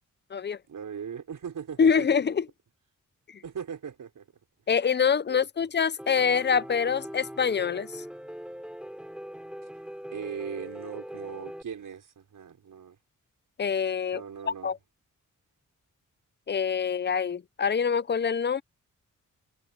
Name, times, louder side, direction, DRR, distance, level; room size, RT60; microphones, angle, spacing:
voice 1, 0.7-2.1 3.4-4.3 5.3-5.5 10.1-13.0 14.1-14.7, right 7 dB, 80° right, 5.6 m, -39 dB
voice 2, 1.8-2.5 3.3-3.4 4.7-8.0 13.6-14.8 16.5-18.6, left 6 dB, 35° left, 0.6 m, -25 dB
Piano, 6.0-11.6, equal, 5° right, 3.2 m, -41 dB
wide cardioid pair, 105°, 31 cm